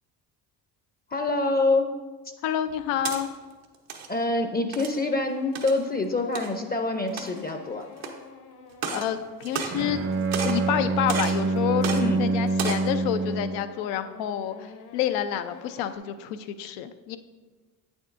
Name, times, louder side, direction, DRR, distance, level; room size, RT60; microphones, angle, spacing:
voice 1, 1.1-1.9 4.1-7.8 11.9-12.2, left 2 dB, 20° left, 6 dB, 0.6 m, -26 dB
voice 2, 2.4-3.3 8.9-10.0 10.4-11.9 12.2-17.2, left 10 dB, 85° left, 10 dB, 0.6 m, -28 dB
sound 1, 2.7-3.2 3.7-4.1 4.7-5.0 5.6-5.8 6.4-6.5 7.1-7.5 8.0-8.1 8.7-9.1 9.4-10.0 10.3-10.7 11.1-11.4 11.8-12.0 12.5-12.9, right 7 dB, 85° right, 1.0 m, -32 dB
sound 2, 4.5-16.0, left 5 dB, 60° left, 1.0 m, -47 dB
Bowed string instrument, 9.7-13.7, right 3 dB, 30° right, 0.6 m, -26 dB
8.5 x 7.1 x 2.5 m, 1.3 s
supercardioid pair, 70°, 43 cm